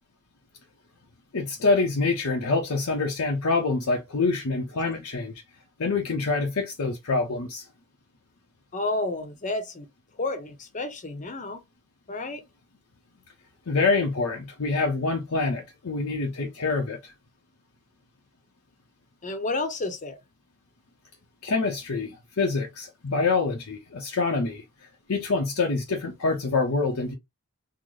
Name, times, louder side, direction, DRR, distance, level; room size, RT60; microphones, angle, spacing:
voice 1, 1.3-5.3 5.8-7.7 13.7-17.1 21.4-24.6 25.1-27.1, left 3 dB, 70° left, 0.7 m, -26 dB
voice 2, 8.7-9.9 10.2-11.6 12.1-12.4 19.2-20.2, left 2 dB, 35° left, 0.7 m, -30 dB
3.9 x 2.0 x 3.1 m
head